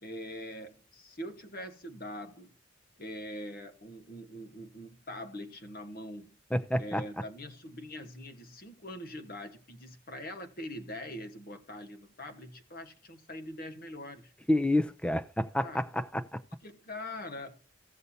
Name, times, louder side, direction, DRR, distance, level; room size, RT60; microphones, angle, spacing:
voice 1, 0.0-2.5 3.0-6.4 6.8-14.3 15.6-15.9 16.6-17.6, left 1 dB, 45° left, 1.3 m, -43 dB
voice 2, 6.5-7.0 14.5-16.4, left 1 dB, 5° left, 0.5 m, -29 dB
16.5 x 6.6 x 2.7 m
head